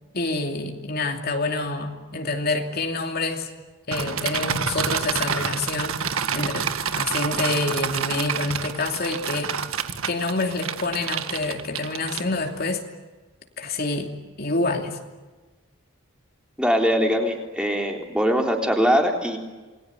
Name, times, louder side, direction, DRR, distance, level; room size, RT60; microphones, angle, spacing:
voice 1, 0.1-3.5 3.9-6.0 6.3-9.5 10.0-12.8 13.6-14.1 14.4-15.0, left 2 dB, 45° left, 4 dB, 2.9 m, -27 dB
sound 1, 3.9-12.6, right 7 dB, 85° right, 1.7 m, -28 dB
voice 2, 16.6-19.4, equal, 5° right, 2 dB, 3.6 m, -22 dB
29.0 x 22.0 x 9.5 m, 1.3 s
head